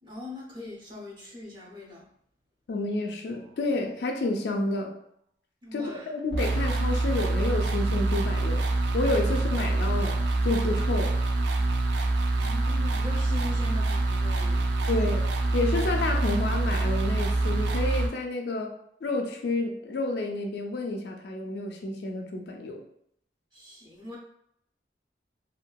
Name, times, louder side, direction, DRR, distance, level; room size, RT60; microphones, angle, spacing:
voice 1, 0.0-2.1 5.6-6.1 12.4-15.3 23.5-24.2, left 2 dB, 25° right, -3 dB, 0.5 m, -41 dB
voice 2, 2.7-5.0 5.7-8.6 8.9-11.1 14.9-15.2 15.5-18.7 19.0-22.8, left 2 dB, 65° left, 3 dB, 0.4 m, -30 dB
sound 1, 6.3-18.1, right 2 dB, 75° right, 0.3 m, -26 dB
2.6 x 2.3 x 2.2 m, 0.72 s
head